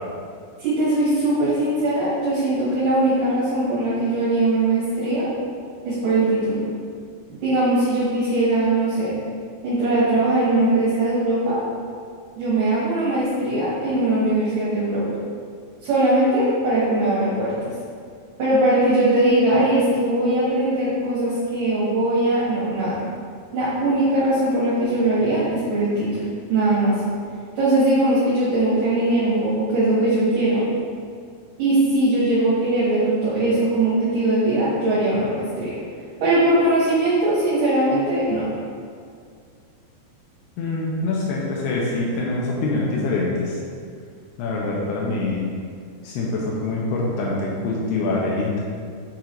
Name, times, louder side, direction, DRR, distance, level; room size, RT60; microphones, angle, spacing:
voice 1, 0.6-5.3 5.9-6.6 7.3-9.1 9.6-11.6 12.4-15.0 15.8-17.7 18.4-23.0 23.5-26.9 27.6-30.6 31.6-35.7 36.2-38.4, right 1 dB, 60° right, -10 dB, 2.9 m, -20 dB
voice 2, 40.6-43.6 44.4-45.5 46.0-48.5, left 2 dB, 85° left, -4 dB, 2.9 m, -24 dB
7.2 x 3.8 x 4.5 m, 2.2 s
omnidirectional pair, 4.6 m